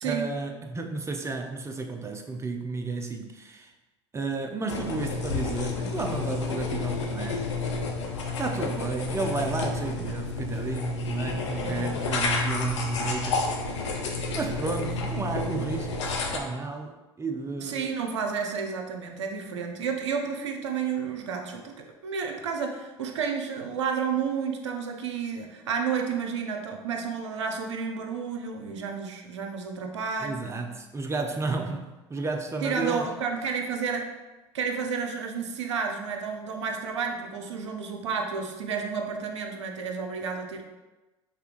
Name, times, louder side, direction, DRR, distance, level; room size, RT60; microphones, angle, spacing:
voice 1, 0.0-3.7 4.1-7.5 8.4-13.6 14.4-17.9 30.2-33.1, right 3 dB, 20° right, 4 dB, 0.6 m, -32 dB
sound 1, 4.7-16.4, left 3 dB, 80° left, 0.6 m, -30 dB
voice 2, 11.5-12.0 17.6-30.6 31.5-31.8 32.6-34.1 34.5-40.6, right 6 dB, 80° right, 3 dB, 0.6 m, -31 dB
5.6 x 3.4 x 2.5 m, 1.1 s
hypercardioid pair, 70°, 15 cm